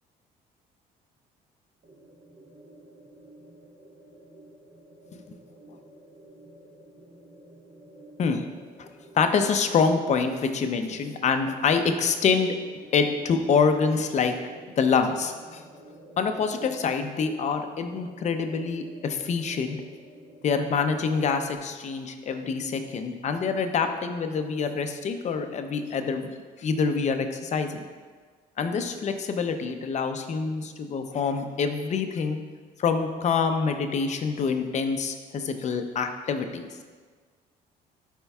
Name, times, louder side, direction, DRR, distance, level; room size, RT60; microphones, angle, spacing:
sound 1, 1.8-21.6, right 1 dB, 50° right, 1.5 m, -50 dB
voice 1, 9.1-12.5 12.9-14.3 14.8-15.6 16.2-19.8 20.4-26.3 26.6-27.8 28.6-32.4 32.8-36.7, left 5 dB, 45° left, 7 dB, 0.6 m, -26 dB
11.0 x 4.5 x 2.3 m, 1.5 s
cardioid pair, 110°, 17 cm